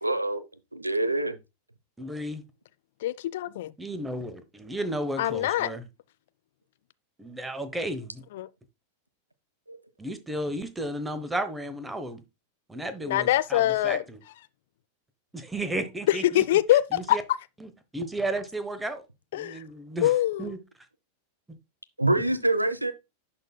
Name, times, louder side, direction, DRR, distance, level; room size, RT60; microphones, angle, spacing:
voice 1, 0.0-0.4 0.7-1.4 9.7-9.8 22.0-22.9, right 2 dB, 85° right, 0.6 m, -25 dB
voice 2, 2.0-2.4 3.8-5.9 7.2-8.2 10.0-12.2 12.7-14.2 15.3-16.4 16.9-17.2 17.6-19.0 19.3-20.1 20.4-20.6 21.5-21.6 22.2-22.3, right 1 dB, 10° right, 0.9 m, -33 dB
voice 3, 3.0-3.7 5.2-5.7 8.3-8.5 13.0-14.0 16.1-16.8 17.1-17.2 19.3-19.6 20.0-20.5, left 14 dB, 55° left, 0.3 m, -24 dB
11.5 x 4.1 x 2.2 m
figure-of-eight pair, 90°, 0 cm